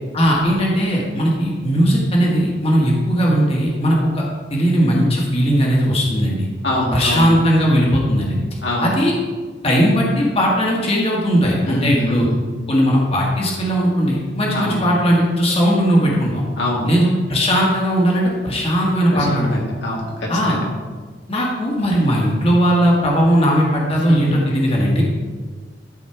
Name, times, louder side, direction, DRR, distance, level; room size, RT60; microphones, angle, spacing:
voice 1, 0.1-4.2 4.5-6.5 6.9-8.4 8.8-9.1 9.6-12.3 12.7-16.4 16.8-19.6 20.3-20.6 21.3-25.0, equal, 35° left, -3 dB, 1.7 m, -18 dB
voice 2, 6.6-7.3 8.6-8.9 11.7-12.3 14.5-14.8 16.6-16.9 19.1-20.7 24.1-24.2, left 1 dB, 70° left, -2 dB, 2.2 m, -24 dB
12.5 x 4.2 x 4.6 m, 1.5 s
head